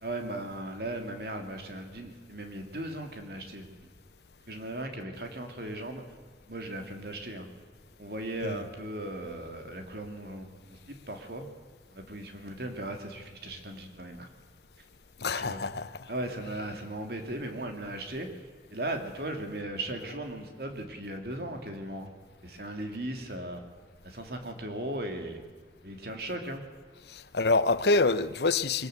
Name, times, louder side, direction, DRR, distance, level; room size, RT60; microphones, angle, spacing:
voice 1, 0.0-3.9 4.5-6.0 6.5-7.5 8.0-11.5 11.9-14.3 15.3-15.6 16.1-18.3 18.7-22.1 22.4-23.6 24.0-25.4 25.8-26.7, right 1 dB, 60° right, 3.0 m, -37 dB
voice 2, 15.2-16.1 27.1-28.9, left 3 dB, 70° left, 0.9 m, -26 dB
22.5 x 19.5 x 8.0 m
head